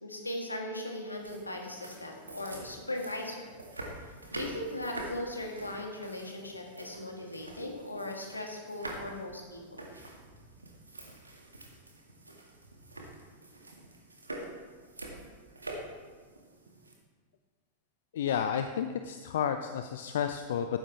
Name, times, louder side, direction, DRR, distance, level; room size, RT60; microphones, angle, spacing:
voice 1, 0.0-3.5 4.3-9.9, left 1 dB, 80° left, 1 dB, 2.1 m, -38 dB
sound 1, 1.1-16.9, right 2 dB, 80° right, 2.0 m, -46 dB
voice 2, 18.1-20.7, left 8 dB, 60° left, 8 dB, 0.6 m, -31 dB
15.0 x 12.5 x 3.4 m, 1.5 s
figure-of-eight pair, 90°, 0 cm